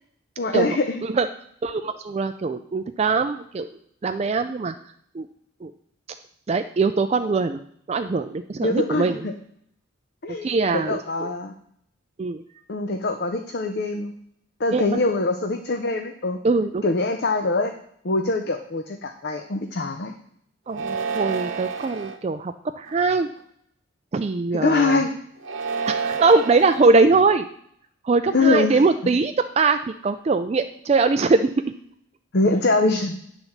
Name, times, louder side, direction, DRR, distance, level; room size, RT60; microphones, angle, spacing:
voice 1, 0.4-1.0 8.6-9.3 10.2-11.5 12.7-14.1 14.6-16.4 16.8-17.7 18.0-20.1 24.5-25.1 28.3-29.1 32.3-33.2, left 3 dB, 50° left, 6 dB, 0.6 m, -23 dB
voice 2, 1.6-3.7 4.0-4.7 5.2-5.3 5.6-5.7 6.5-7.6 7.9-9.2 10.4-11.3 12.2-12.4 14.7-15.0 16.4-16.8 20.7-23.3 24.1-25.0 25.9-27.5 28.0-31.5, right 3 dB, 30° right, 8 dB, 0.3 m, -22 dB
sound 1, 20.7-22.2 22.9-23.4 25.4-26.9, right 5 dB, 70° right, 1.2 m, -29 dB
9.6 x 4.0 x 7.1 m, 0.68 s
head